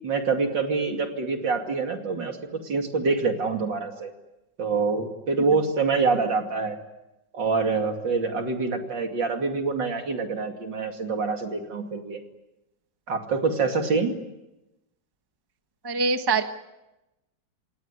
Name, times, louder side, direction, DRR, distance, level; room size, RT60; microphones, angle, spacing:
voice 1, 0.0-2.4 2.6-4.1 4.6-6.8 7.3-12.2 13.1-14.1, right 4 dB, 75° right, 4 dB, 3.3 m, -26 dB
voice 2, 15.8-16.4, right 4 dB, 15° right, 8 dB, 1.1 m, -23 dB
27.5 x 18.5 x 9.8 m, 0.98 s
omnidirectional pair, 2.0 m